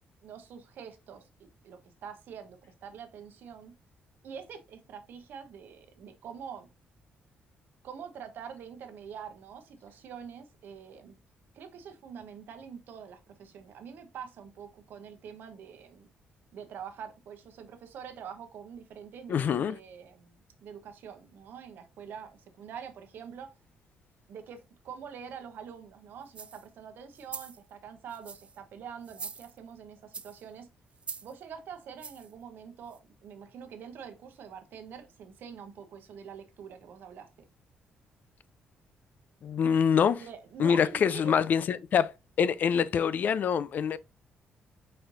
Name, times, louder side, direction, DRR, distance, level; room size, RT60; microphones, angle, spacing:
voice 1, 0.2-1.3 1.6-3.7 4.2-6.7 7.8-11.2 11.5-16.1 16.5-23.5 24.3-30.7 31.2-37.5 40.2-41.4, right 7 dB, 75° right, 0.9 m, -45 dB
voice 2, 19.3-19.8 39.4-40.2 40.6-42.1 42.4-44.0, left 7 dB, 55° left, 0.3 m, -25 dB
sound 1, 26.3-26.7 27.1-27.6 28.1-28.6 29.0-29.7 30.1-30.4 31.0-31.3 32.0-32.3 32.9-33.0, right 5 dB, 35° right, 0.4 m, -43 dB
4.4 x 4.3 x 2.5 m
cardioid pair, 85°, 3 cm